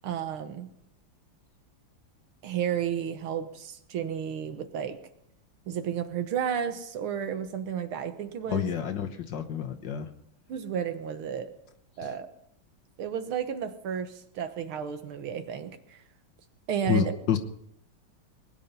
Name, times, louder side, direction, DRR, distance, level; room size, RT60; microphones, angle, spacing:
voice 1, 0.0-0.7 2.4-5.0 5.7-8.7 10.5-11.5 12.0-12.3 13.0-16.0 16.7-17.4, right 8 dB, 75° right, 9 dB, 1.9 m, -32 dB
voice 2, 8.5-10.1 16.9-17.4, left 9 dB, 60° left, 5 dB, 1.6 m, -28 dB
20.5 x 10.0 x 5.4 m, 0.76 s
omnidirectional pair, 2.4 m